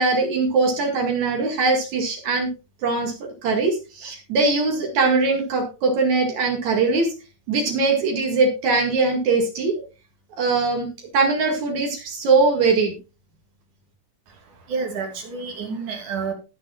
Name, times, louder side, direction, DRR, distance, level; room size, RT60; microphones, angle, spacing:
voice 1, 0.0-2.5 2.8-3.1 3.4-7.1 7.5-9.8 10.4-13.0, right 3 dB, 75° right, 2 dB, 3.3 m, -21 dB
voice 2, 14.3-16.3, right 5 dB, 90° right, 4 dB, 4.0 m, -30 dB
19.0 x 7.4 x 2.3 m, 0.29 s
omnidirectional pair, 3.3 m